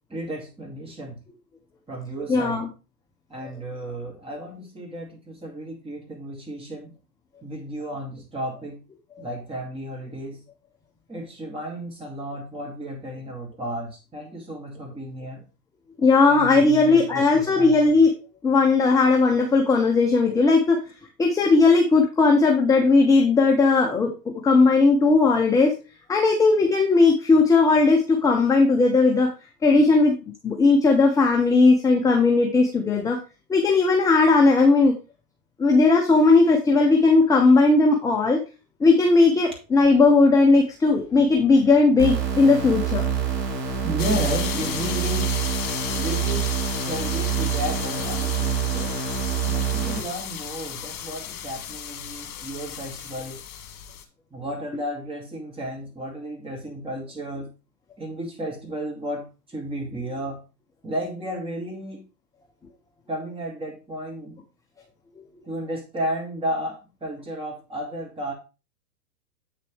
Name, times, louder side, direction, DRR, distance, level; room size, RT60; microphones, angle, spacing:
voice 1, 0.1-1.2 1.9-2.6 3.3-6.9 7.4-8.8 9.2-10.4 11.1-15.4 16.3-17.9 43.8-45.3 45.9-46.5 46.8-49.0 49.4-53.4 54.3-57.5 58.0-60.4 60.8-62.0 63.1-64.4 65.4-68.3, equal, 10° right, 0 dB, 2.6 m, -33 dB
voice 2, 2.3-2.7 16.0-18.1 18.4-20.8 21.2-25.7 26.1-29.3 29.6-30.1 30.4-33.2 33.5-34.9 35.6-38.4 38.8-43.1, left 3 dB, 5° left, 1 dB, 0.7 m, -17 dB
sound 1, 42.0-50.0, right 7 dB, 80° right, 2.9 m, -26 dB
sound 2, 44.0-54.0, left 9 dB, 55° left, 1.7 m, -34 dB
8.2 x 6.7 x 3.4 m, 0.30 s
hypercardioid pair, 110°, 50 cm